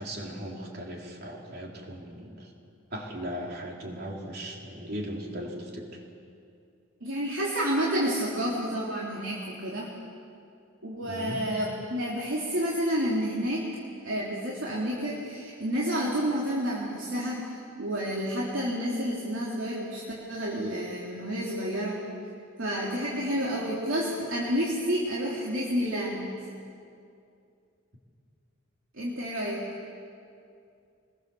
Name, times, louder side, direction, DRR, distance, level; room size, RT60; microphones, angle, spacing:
voice 1, 0.0-2.5 2.9-6.0 11.0-11.4, equal, 50° right, 0 dB, 3.3 m, -38 dB
voice 2, 7.0-9.9 10.8-13.7 14.0-22.0 22.6-26.3 28.9-29.7, equal, 70° right, -4 dB, 3.1 m, -30 dB
25.5 x 21.0 x 7.0 m, 2.5 s
head